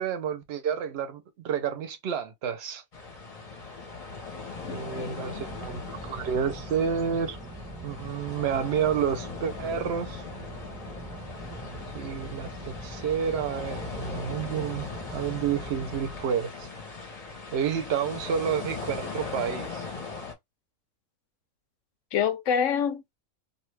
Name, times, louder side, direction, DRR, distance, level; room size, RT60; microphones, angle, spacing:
voice 1, 0.0-2.8 4.7-7.4 7.8-10.2 11.9-16.7 17.5-19.9, right 7 dB, 60° right, 0.8 m, -30 dB
sound 1, 2.9-20.3, left 4 dB, 35° left, 0.7 m, -39 dB
voice 2, 4.6-5.5 22.1-23.2, left 7 dB, 70° left, 0.9 m, -28 dB
sound 2, 5.3-16.2, right 2 dB, 15° right, 0.7 m, -43 dB
2.6 x 2.4 x 3.1 m
omnidirectional pair, 1.4 m